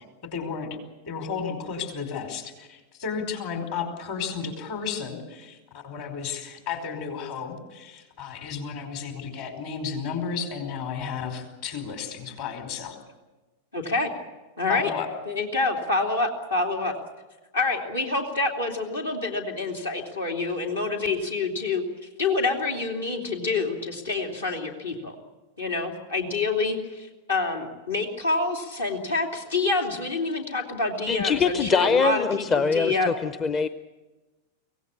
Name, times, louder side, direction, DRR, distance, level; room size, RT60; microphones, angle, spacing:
voice 1, 0.2-0.8 1.0-5.6 5.8-13.0 14.7-15.1, left 6 dB, 50° left, 5 dB, 4.8 m, -33 dB
voice 2, 13.7-14.1 14.6-14.9 15.3-16.9 17.5-21.8 22.2-25.1 25.6-33.2, left 3 dB, 75° left, 1 dB, 2.9 m, -27 dB
voice 3, 31.1-33.7, left 5 dB, 25° left, 12 dB, 0.7 m, -23 dB
24.5 x 17.5 x 8.6 m, 1.2 s
figure-of-eight pair, 90°, 0 cm